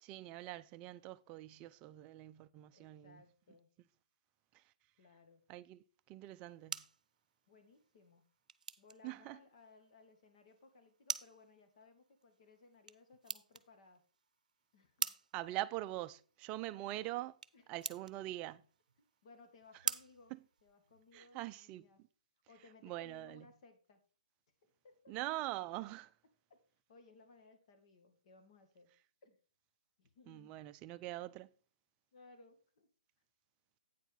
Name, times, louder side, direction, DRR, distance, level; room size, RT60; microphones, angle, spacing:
voice 1, 0.0-3.2 4.5-4.6 5.5-6.8 9.0-9.4 15.3-17.4 17.7-18.6 21.1-21.8 22.8-23.5 25.1-26.1 30.3-31.5, right 16 dB, 25° right, 0.4 m, -43 dB
voice 2, 2.7-3.7 5.0-5.4 7.5-8.3 8.8-14.0 14.7-15.2 17.5-17.6 18.0-18.1 19.2-20.3 20.6-22.0 22.5-24.0 24.6-25.1 26.5-26.6 26.9-28.9 29.2-29.4 30.0-30.5 32.1-32.9, left 3 dB, 50° left, 2.0 m, -62 dB
sound 1, 6.2-21.2, right 5 dB, 75° right, 0.6 m, -47 dB
9.0 x 4.6 x 5.6 m
hypercardioid pair, 140°, 4 cm